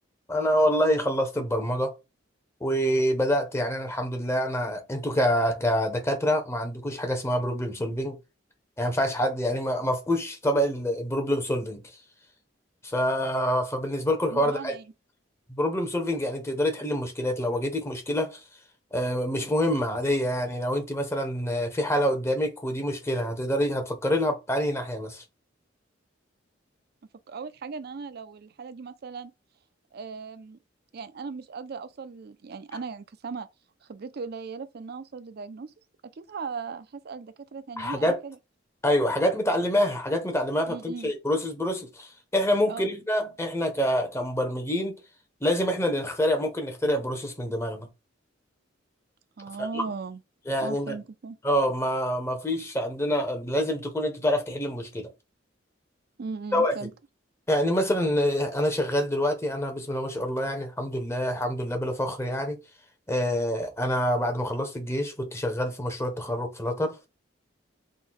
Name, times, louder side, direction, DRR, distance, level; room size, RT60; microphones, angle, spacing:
voice 1, 0.3-1.9 2.6-8.2 8.8-11.8 12.8-14.8 15.5-18.4 18.9-25.2 37.8-38.2 38.8-44.9 45.4-47.9 49.6-49.8 50.5-51.0 51.4-55.1 56.5-56.7 57.5-62.6 63.1-67.1, equal, 15° left, 0.8 m, -26 dB
voice 2, 14.3-14.8 27.3-29.3 29.9-30.6 30.9-33.5 33.8-35.7 36.2-38.4 40.7-41.1 42.7-42.9 49.4-50.2 50.6-51.4 56.2-56.9, right 5 dB, 55° right, 0.4 m, -38 dB
3.8 x 2.2 x 4.3 m
head